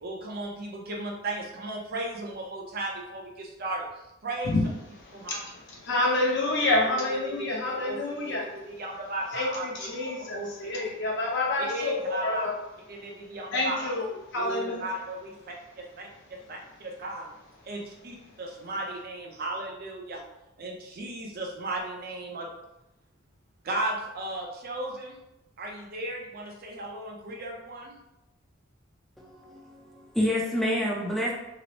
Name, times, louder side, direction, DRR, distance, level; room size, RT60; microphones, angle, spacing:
voice 1, 0.0-3.9 4.2-4.5 5.1-5.3 7.1-8.0 8.3-8.4 8.7-9.9 10.2-10.7 11.6-12.5 12.9-13.9 14.4-17.3 17.7-20.2 20.6-22.5 23.6-25.2 25.6-28.0, right 2 dB, 50° right, -1 dB, 0.5 m, -35 dB
voice 2, 4.9-8.5 9.3-12.5 13.1-13.2 13.5-14.8, left 2 dB, 60° left, -2 dB, 0.7 m, -28 dB
voice 3, 29.2-31.3, equal, ahead, -4 dB, 0.4 m, -28 dB
2.9 x 2.0 x 2.8 m, 0.90 s
head